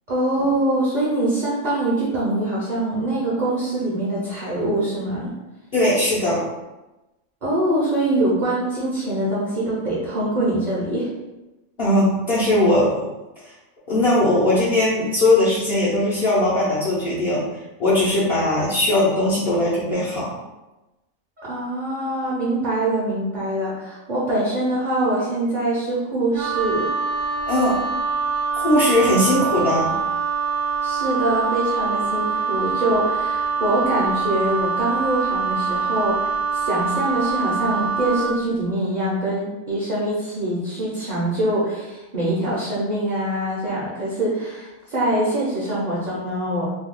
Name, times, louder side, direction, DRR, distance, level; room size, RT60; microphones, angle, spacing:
voice 1, 0.1-5.3 7.4-11.1 21.4-26.9 30.8-46.6, right 1 dB, 40° right, -7 dB, 0.6 m, -24 dB
voice 2, 5.7-6.4 11.8-13.0 13.9-17.4 17.8-20.4 27.5-27.8 28.5-29.9, left 1 dB, 50° left, -9 dB, 0.8 m, -19 dB
Wind instrument woodwind instrument, 26.3-38.4, right 5 dB, 75° right, 1.0 m, -24 dB
2.7 x 2.3 x 3.6 m, 1.0 s
omnidirectional pair, 1.5 m